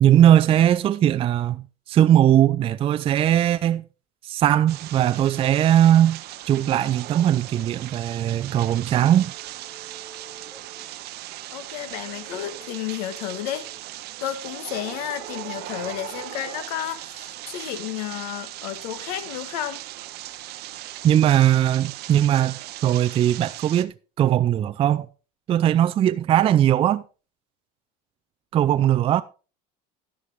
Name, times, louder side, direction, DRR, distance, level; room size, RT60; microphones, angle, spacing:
voice 1, 0.0-3.8 4.2-6.2 6.5-9.3 21.0-25.1 25.5-27.0 28.5-29.2, right 11 dB, 25° right, 0.4 m, -19 dB
sound 1, 4.7-23.8, right 15 dB, 50° right, 0.8 m, -38 dB
sound 2, 8.9-10.9 11.8-13.8 14.6-16.5, right 2 dB, 10° right, 1.5 m, -50 dB
voice 2, 11.5-13.7 14.2-19.8, left 11 dB, 90° left, 1.5 m, -32 dB
11.0 x 9.9 x 3.6 m
cardioid pair, 140°, 21 cm